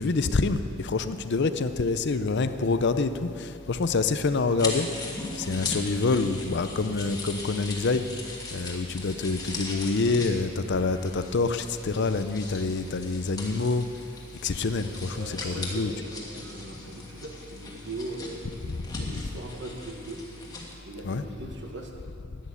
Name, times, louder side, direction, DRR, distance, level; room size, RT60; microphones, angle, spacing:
voice 1, 0.0-4.9 5.4-8.0 8.5-13.9 14.4-15.9 18.7-19.2 21.0-21.2, left 3 dB, 55° left, 11 dB, 0.6 m, -27 dB
sound 1, 4.6-20.7, left 2 dB, 15° left, 1.6 m, -39 dB
voice 2, 15.1-18.4 18.9-20.3 20.8-21.9, right 2 dB, 55° right, 2 dB, 1.6 m, -39 dB
11.5 x 10.5 x 8.4 m, 2.7 s
head